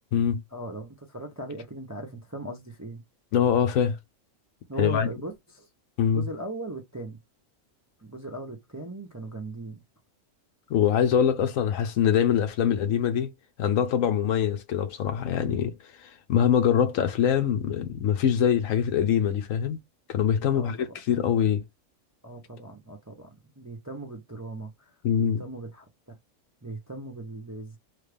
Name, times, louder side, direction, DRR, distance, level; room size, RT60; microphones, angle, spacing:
voice 1, 0.5-3.0 4.7-5.7 6.1-7.2 8.0-9.8 20.5-20.9 22.2-25.8 26.6-27.8, right 2 dB, 20° right, 0.4 m, -38 dB
voice 2, 3.3-4.0 4.8-5.1 6.0-6.3 10.7-13.3 13.6-15.7 16.0-19.8 20.1-21.6 25.0-25.4, left 8 dB, 85° left, 1.1 m, -24 dB
3.3 x 2.4 x 3.3 m
omnidirectional pair, 1.4 m